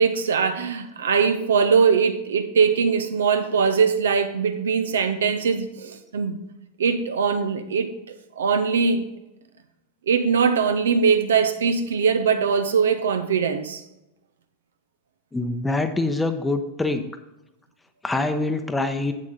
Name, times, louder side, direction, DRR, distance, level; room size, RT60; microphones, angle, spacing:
voice 1, 0.0-6.4 6.8-7.9 8.4-9.1 10.1-13.8, right 6 dB, 65° right, 0.9 m, -21 dB
voice 2, 15.3-17.0 18.0-19.1, left 2 dB, 10° left, 0.9 m, -24 dB
8.7 x 8.0 x 3.8 m
figure-of-eight pair, 90°, 0 cm